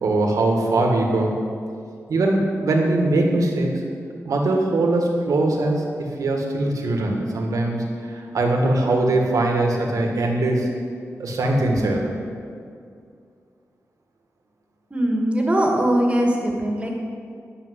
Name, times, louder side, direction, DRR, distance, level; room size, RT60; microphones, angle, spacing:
voice 1, 0.0-1.4 2.1-3.7 4.3-10.7 11.2-12.0, right 2 dB, 90° right, 1 dB, 1.8 m, -21 dB
voice 2, 14.9-16.9, right 1 dB, 20° right, 0 dB, 1.7 m, -21 dB
10.5 x 6.9 x 8.1 m, 2.3 s
wide cardioid pair, 160°, 6 cm